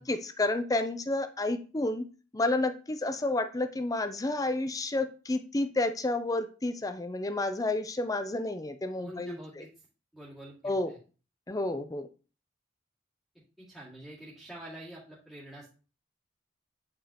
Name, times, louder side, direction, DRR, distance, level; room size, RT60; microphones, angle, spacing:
voice 1, 0.0-2.1 2.3-9.6 10.6-10.9 11.5-12.1, left 2 dB, 20° left, 9 dB, 0.5 m, -30 dB
voice 2, 8.9-9.7 10.1-11.0 13.6-15.7, right 1 dB, ahead, -9 dB, 2.1 m, -47 dB
9.0 x 5.0 x 2.9 m, 0.36 s
head